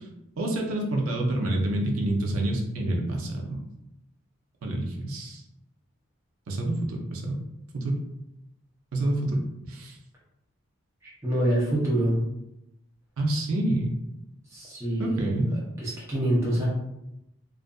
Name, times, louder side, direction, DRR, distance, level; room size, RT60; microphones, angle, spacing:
voice 1, 0.4-3.6 4.6-5.4 6.5-7.4 7.7-8.0 8.9-10.0 13.2-13.9 15.0-15.5, right 1 dB, 80° right, 1 dB, 0.5 m, -27 dB
voice 2, 11.0-12.2 14.5-15.1 15.8-16.7, right 1 dB, 15° right, -7 dB, 0.6 m, -26 dB
2.5 x 2.4 x 2.3 m, 0.86 s
head